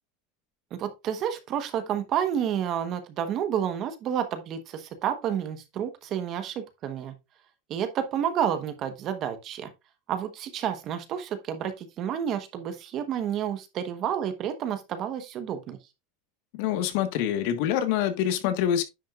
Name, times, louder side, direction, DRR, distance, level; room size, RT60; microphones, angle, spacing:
voice 1, 0.8-7.1 7.7-9.7 10.1-15.8, right 9 dB, 35° right, 1.2 m, -30 dB
voice 2, 16.5-18.8, left 10 dB, 60° left, 1.4 m, -25 dB
10.0 x 6.0 x 2.5 m
supercardioid pair, 160°, 0 cm